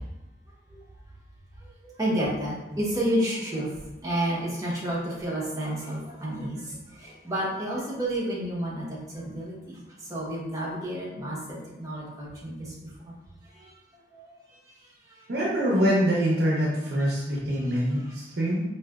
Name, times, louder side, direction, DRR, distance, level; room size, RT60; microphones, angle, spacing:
voice 1, 1.8-3.7 4.0-8.9 9.1-12.7 13.0-13.1 13.6-13.7 14.1-14.3, right 1 dB, 20° right, -5 dB, 0.8 m, -30 dB
voice 2, 15.3-18.6, equal, 60° right, -5 dB, 0.7 m, -24 dB
4.8 x 2.7 x 2.3 m, 0.99 s
head